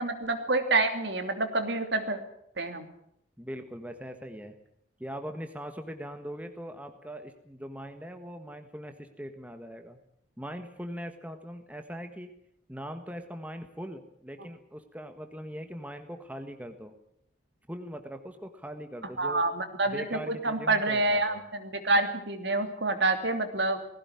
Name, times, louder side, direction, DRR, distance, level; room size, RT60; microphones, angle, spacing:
voice 1, 0.0-2.2 2.6-2.9 19.2-23.8, right 2 dB, 65° right, 7 dB, 2.9 m, -27 dB
voice 2, 3.4-4.6 5.0-10.0 10.4-12.3 12.7-16.9 17.7-19.4 19.8-21.4, equal, 10° right, 6 dB, 1.5 m, -41 dB
19.5 x 16.5 x 9.7 m, 0.73 s
head